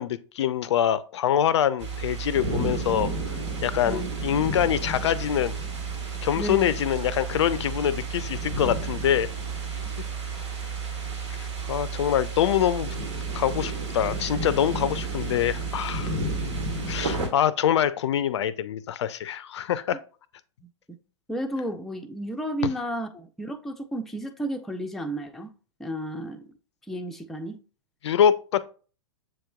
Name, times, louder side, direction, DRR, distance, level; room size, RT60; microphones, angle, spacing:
voice 1, 0.0-3.1 3.6-5.6 6.2-9.3 11.3-13.0 13.3-16.2 16.9-20.0 28.0-28.6, left 10 dB, 65° left, 0.4 m, -25 dB
sound 1, 1.8-17.3, right 3 dB, 70° right, 1.4 m, -31 dB
voice 2, 6.4-6.7 9.8-9.9 21.3-25.5 25.8-26.4 26.9-27.6, right 1 dB, ahead, 0.4 m, -32 dB
7.4 x 2.9 x 2.3 m
figure-of-eight pair, 105°, 16 cm